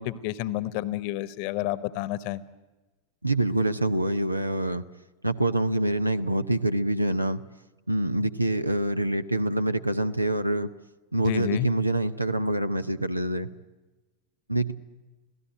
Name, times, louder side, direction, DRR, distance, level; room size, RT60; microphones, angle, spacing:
voice 1, 0.0-2.4 11.2-11.7, left 14 dB, 45° left, 17 dB, 1.2 m, -30 dB
voice 2, 3.2-4.8 5.2-7.4 7.9-10.7 11.1-13.5 14.5-14.7, right 1 dB, 85° right, 12 dB, 0.9 m, -26 dB
26.5 x 17.0 x 9.0 m, 1.2 s
figure-of-eight pair, 90°, 0 cm